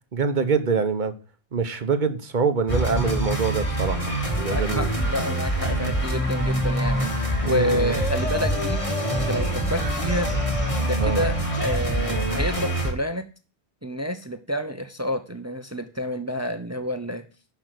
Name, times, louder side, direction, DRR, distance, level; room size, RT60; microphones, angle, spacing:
voice 1, 0.1-1.1 1.5-4.1 4.4-4.9 7.4-7.9 11.0-11.2, right 5 dB, 50° right, 10 dB, 1.1 m, -25 dB
sound 1, 2.7-12.9, right 1 dB, 30° left, 2.0 m, -25 dB
voice 2, 4.5-7.1 7.4-8.8 9.1-10.3 10.8-13.2 13.8-17.2, left 1 dB, 15° right, 7 dB, 0.8 m, -29 dB
11.5 x 5.4 x 6.0 m, 0.36 s
omnidirectional pair, 1.1 m